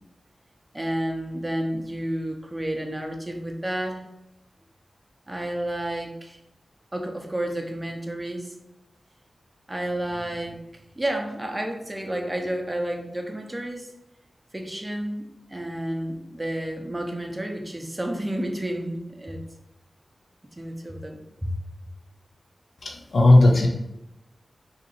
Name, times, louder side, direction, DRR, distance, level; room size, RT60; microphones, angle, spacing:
voice 1, 0.7-4.0 5.3-6.4 6.9-8.5 9.7-10.6 11.0-13.9 14.5-19.4 20.6-21.5, right 1 dB, 15° right, 3 dB, 0.6 m, -31 dB
voice 2, 22.8-23.7, left 2 dB, 70° left, 0 dB, 0.6 m, -16 dB
2.8 x 2.6 x 4.0 m, 0.90 s
wide cardioid pair, 75°, 0 cm